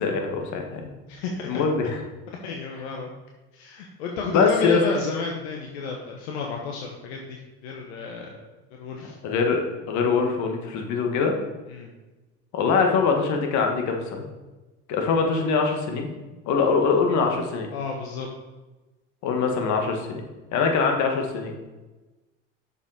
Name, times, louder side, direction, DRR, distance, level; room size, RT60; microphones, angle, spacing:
voice 1, 0.0-0.9 1.4-2.0 4.3-4.8 9.2-11.3 12.5-14.3 14.9-16.1 16.5-17.7 19.2-20.2 20.5-21.5, left 5 dB, 65° left, 3 dB, 1.6 m, -23 dB
voice 2, 1.1-1.6 2.4-3.1 3.5-8.4 8.7-9.2 11.7-11.9 17.7-18.3, left 4 dB, 85° left, 1 dB, 1.1 m, -31 dB
7.0 x 5.5 x 5.0 m, 1.1 s
supercardioid pair, 85°, 31 cm